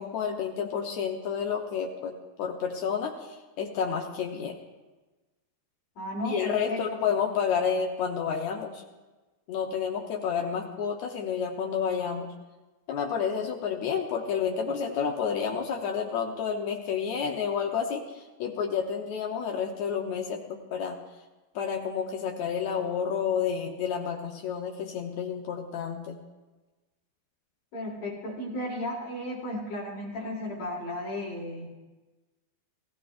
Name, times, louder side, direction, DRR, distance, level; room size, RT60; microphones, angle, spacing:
voice 1, 0.0-4.6 6.2-8.8 9.5-12.3 12.9-21.0 21.5-26.2, left 7 dB, 75° left, 1 dB, 1.6 m, -30 dB
voice 2, 6.0-6.8 27.7-31.7, left 1 dB, 50° left, -3 dB, 2.8 m, -34 dB
19.5 x 15.0 x 2.5 m, 1.2 s
omnidirectional pair, 4.5 m